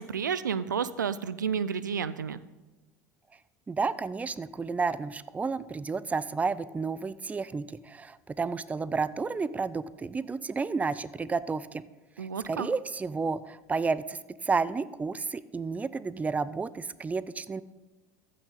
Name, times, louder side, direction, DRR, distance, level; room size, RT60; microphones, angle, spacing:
voice 1, 0.0-2.4 12.2-12.7, right 7 dB, 90° right, 16 dB, 0.4 m, -31 dB
voice 2, 3.7-11.8 12.2-17.6, right 4 dB, 15° right, 17 dB, 0.4 m, -31 dB
14.5 x 6.2 x 4.0 m, 1.2 s
hypercardioid pair, 75°, 10 cm